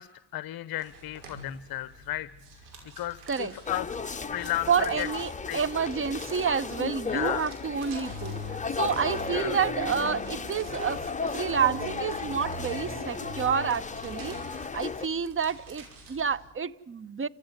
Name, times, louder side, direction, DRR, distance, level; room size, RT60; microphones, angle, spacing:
voice 1, 0.0-2.3 3.0-3.9 4.3-5.1 5.5-5.6 7.1-7.5 9.3-9.6, left 15 dB, 45° left, 0.8 m, -34 dB
sound 1, 0.7-16.5, right 2 dB, 80° right, 5.8 m, -50 dB
sound 2, 3.7-15.1, left 5 dB, 15° left, 1.0 m, -35 dB
voice 2, 4.7-17.3, right 6 dB, 25° right, 0.9 m, -29 dB
sound 3, 8.1-11.1 11.5-14.5, right 1 dB, 50° right, 6.2 m, -42 dB
29.0 x 15.5 x 9.5 m
supercardioid pair, 70°, 49 cm